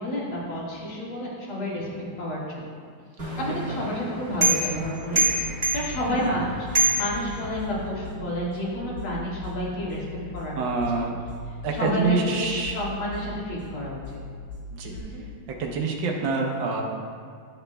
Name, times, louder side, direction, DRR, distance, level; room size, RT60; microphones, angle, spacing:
voice 1, 0.0-1.9 2.2-2.6 3.4-5.2 5.7-10.0 10.3-10.8 11.7-14.2 14.9-15.2, left 1 dB, 75° left, -6 dB, 2.6 m, -30 dB
sound 1, 3.2-7.9, right 2 dB, 25° right, 1.5 m, -27 dB
sound 2, 4.8-15.0, left 2 dB, 10° left, 0.8 m, -40 dB
voice 2, 10.5-11.2 11.6-12.8 14.7-15.0 15.5-16.8, right 4 dB, 70° right, 1 dB, 1.5 m, -27 dB
11.5 x 6.0 x 2.2 m, 2.1 s
omnidirectional pair, 2.3 m